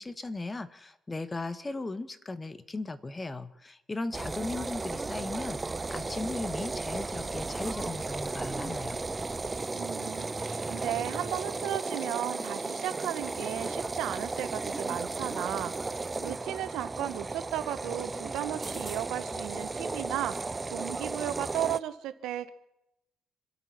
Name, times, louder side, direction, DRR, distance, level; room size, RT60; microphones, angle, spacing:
voice 1, 0.0-9.0, left 2 dB, 25° left, 13 dB, 1.2 m, -37 dB
sound 1, 4.1-21.8, right 3 dB, 25° right, 0.5 m, -35 dB
voice 2, 9.7-22.5, right 12 dB, 90° right, 12 dB, 1.1 m, -35 dB
26.5 x 9.0 x 5.9 m, 0.86 s
cardioid pair, 90°, 0 cm